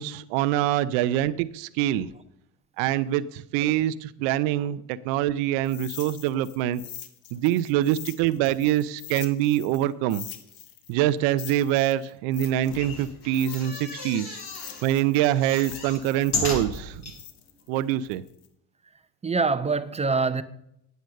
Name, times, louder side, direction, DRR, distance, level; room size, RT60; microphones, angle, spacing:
voice 1, 0.0-2.1 2.8-6.8 7.3-10.2 10.9-14.4 14.8-17.0 17.7-18.2, right 12 dB, 75° right, 0.7 m, -25 dB
sound 1, 5.6-9.8 10.1-14.0 14.4-18.5, left 11 dB, 75° left, 1.4 m, -43 dB
sound 2, 12.6-14.8 15.2-17.2 17.7-17.8 18.0-18.1, left 3 dB, 55° left, 5.0 m, -34 dB
voice 2, 18.9-20.4, right 4 dB, 15° right, 0.7 m, -26 dB
9.3 x 8.1 x 6.5 m
supercardioid pair, 85°, 47 cm